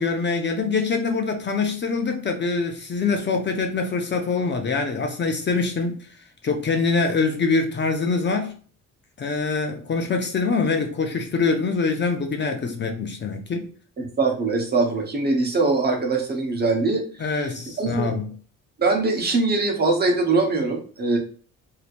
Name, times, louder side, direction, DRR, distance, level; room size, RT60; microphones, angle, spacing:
voice 1, 0.0-6.1 6.4-8.6 9.2-13.7 17.2-18.3, left 4 dB, 35° left, 0.6 m, -24 dB
voice 2, 14.0-17.4 17.8-18.1 18.8-21.2, right 3 dB, 35° right, 1.0 m, -22 dB
3.2 x 2.8 x 2.5 m
cardioid pair, 90°, 30 cm